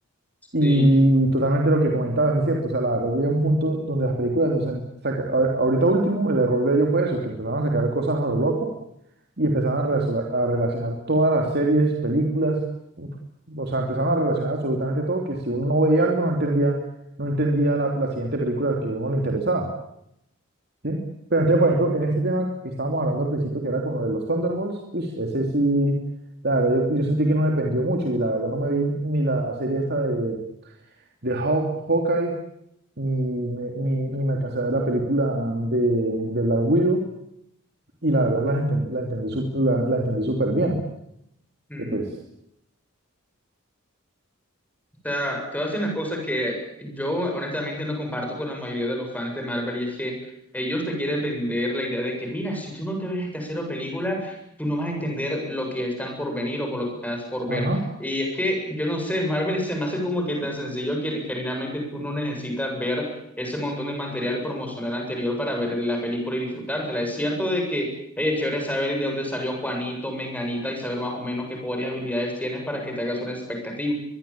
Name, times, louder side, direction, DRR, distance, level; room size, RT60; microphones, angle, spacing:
voice 1, 0.5-8.7 9.4-12.6 13.0-13.1 13.5-16.8 17.2-19.7 20.8-21.0 21.3-26.0 26.4-30.4 31.2-32.4 33.0-37.0 38.0-40.8 41.8-42.1 57.5-57.8, right 1 dB, 50° right, 1 dB, 3.1 m, -23 dB
voice 2, 45.0-50.2 50.5-57.7 58.0-67.9 68.2-73.9, equal, 5° left, 2 dB, 7.6 m, -28 dB
23.0 x 23.0 x 8.8 m, 0.79 s
head